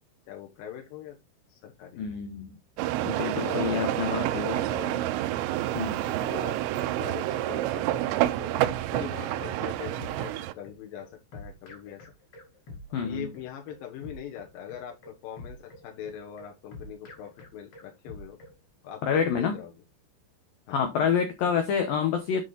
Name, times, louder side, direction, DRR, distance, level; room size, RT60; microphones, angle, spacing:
voice 1, 0.3-1.2 1.5-2.1 3.3-5.1 6.1-6.6 7.0-8.6 8.9-12.1 13.0-18.4 18.8-19.7 20.7-20.8 21.5-21.6, left 10 dB, 70° left, 2.2 m, -42 dB
voice 2, 2.0-2.6 3.0-4.5 5.7-6.0 12.9-13.3 19.0-19.6 20.7-22.4, left 7 dB, 85° left, 2.0 m, -27 dB
sound 1, 2.8-10.5, right 14 dB, 80° right, 2.8 m, -28 dB
sound 2, 7.9-18.6, left 2 dB, 50° left, 1.9 m, -47 dB
9.7 x 4.4 x 4.0 m
omnidirectional pair, 5.6 m